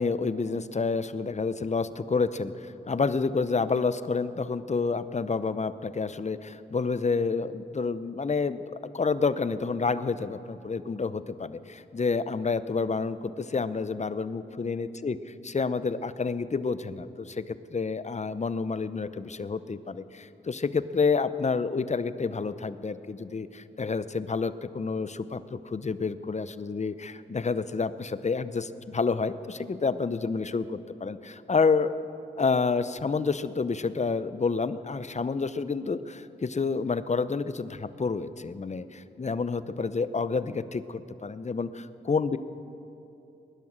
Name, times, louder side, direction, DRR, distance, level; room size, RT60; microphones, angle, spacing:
voice 1, 0.0-8.6 8.9-15.2 15.4-31.9 32.4-42.4, left 4 dB, 35° left, 14 dB, 0.7 m, -29 dB
19.5 x 11.0 x 6.5 m, 2.9 s
cardioid pair, 45°, 20 cm